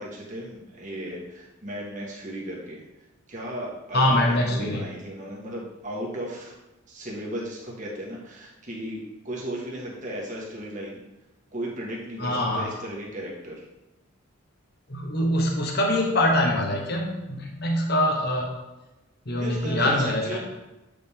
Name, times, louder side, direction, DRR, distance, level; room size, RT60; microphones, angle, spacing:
voice 1, 0.0-2.8 3.3-6.5 6.9-11.0 11.5-13.6 19.3-20.4, equal, 35° right, -4 dB, 1.5 m, -35 dB
voice 2, 3.9-4.8 12.2-12.7 14.9-18.5 19.3-20.4, left 1 dB, 50° left, 0 dB, 1.1 m, -24 dB
8.2 x 5.1 x 3.5 m, 1.0 s
head